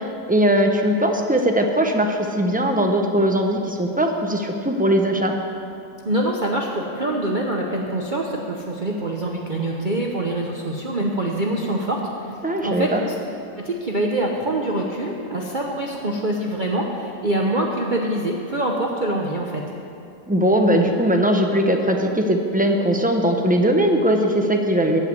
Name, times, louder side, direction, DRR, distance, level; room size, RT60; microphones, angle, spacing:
voice 1, 0.3-5.3 12.4-13.0 20.3-25.0, right 1 dB, 10° right, 2 dB, 0.5 m, -20 dB
voice 2, 6.0-12.3 12.6-13.1 13.6-19.6, right 1 dB, 35° right, -1 dB, 0.9 m, -25 dB
15.5 x 5.7 x 9.3 m, 2.6 s
omnidirectional pair, 1.7 m